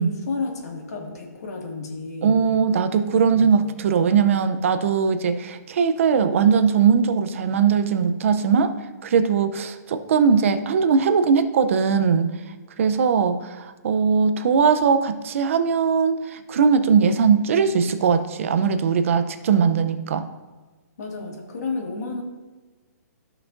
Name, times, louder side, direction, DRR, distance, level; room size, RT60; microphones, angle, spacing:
voice 1, 0.0-2.4 3.0-3.5 21.0-22.2, left 3 dB, 65° left, 0 dB, 2.0 m, -32 dB
voice 2, 2.2-8.7 9.0-12.3 12.8-20.3, right 6 dB, 50° right, 9 dB, 0.6 m, -20 dB
13.5 x 5.9 x 2.6 m, 1.2 s
hypercardioid pair, 165°, 9 cm